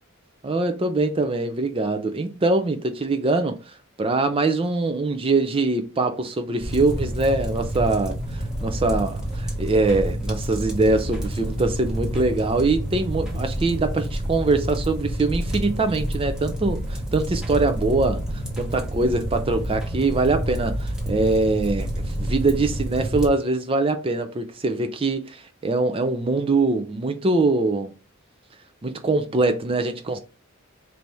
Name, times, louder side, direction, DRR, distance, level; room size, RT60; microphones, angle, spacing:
voice 1, 0.4-3.6 4.0-18.2 18.6-27.9 28.8-30.2, right 3 dB, 25° right, 0.4 m, -23 dB
sound 1, 6.6-23.3, equal, 5° right, 1.0 m, -28 dB
4.5 x 2.7 x 3.4 m
head